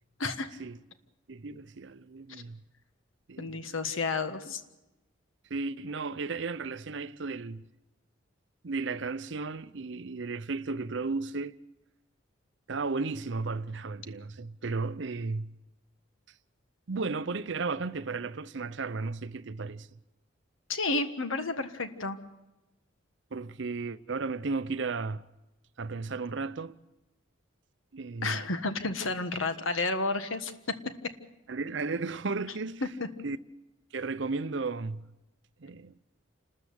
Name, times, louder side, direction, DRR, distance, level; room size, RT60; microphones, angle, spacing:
voice 1, 1.3-2.6 3.3-3.7 5.5-7.6 8.6-11.6 12.7-15.6 16.9-19.9 23.3-25.3 25.8-26.8 27.9-28.4 31.5-32.8 33.2-33.4 33.9-35.1 35.6-35.9, right 4 dB, 60° right, 0.6 m, -34 dB
voice 2, 3.4-4.6 20.7-22.2 28.2-30.5 33.0-33.1, left 3 dB, 80° left, 1.6 m, -31 dB
28.5 x 13.5 x 8.1 m
head